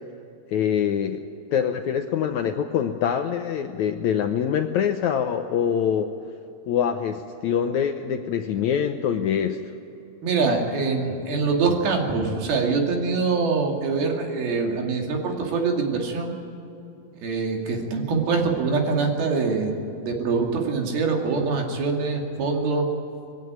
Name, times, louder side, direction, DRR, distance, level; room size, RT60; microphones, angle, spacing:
voice 1, 0.5-1.2 1.5-6.1 6.7-9.6, left 8 dB, 75° left, 7 dB, 1.7 m, -24 dB
voice 2, 10.2-16.3 17.2-22.8, right 4 dB, 85° right, 1 dB, 4.4 m, -24 dB
22.0 x 15.5 x 9.4 m, 2.8 s
omnidirectional pair, 4.2 m